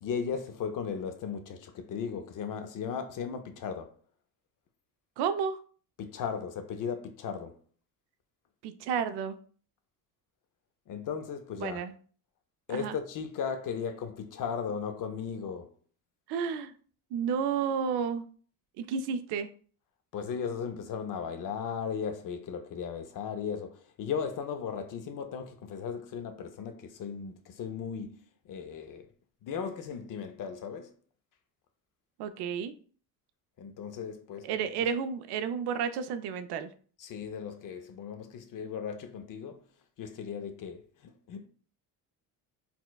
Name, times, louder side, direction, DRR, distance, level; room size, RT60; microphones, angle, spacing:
voice 1, 0.0-3.9 6.0-7.5 10.9-11.8 12.7-15.7 20.1-28.2 28.5-29.1 29.4-30.9 33.6-34.9 37.0-39.6 40.0-41.5, left 6 dB, 55° left, 0.6 m, -36 dB
voice 2, 5.2-5.6 8.6-9.4 11.6-11.9 12.7-13.0 16.3-16.7 17.1-18.2 18.8-19.5 32.2-32.7 34.4-36.7, right 7 dB, 80° right, 0.5 m, -31 dB
4.3 x 2.2 x 2.2 m
cardioid pair, 90°, 40 cm